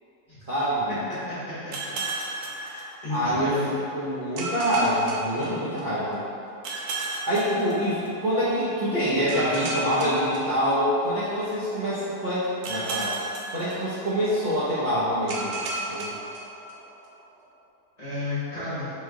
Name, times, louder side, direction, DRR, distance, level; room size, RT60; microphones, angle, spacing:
voice 1, 0.5-1.0 3.1-6.2 7.3-13.1 13.5-15.6 15.9-16.1, equal, 45° right, -13 dB, 0.7 m, -25 dB
sound 1, 1.7-3.5 4.4-6.1 6.6-8.4 9.3-11.3 12.6-14.4 15.3-17.1, right 2 dB, 75° right, 1.0 m, -34 dB
voice 2, 2.4-3.7 18.0-18.9, left 2 dB, 30° left, -12 dB, 0.9 m, -33 dB
3.6 x 3.2 x 3.6 m, 2.7 s
omnidirectional pair, 1.7 m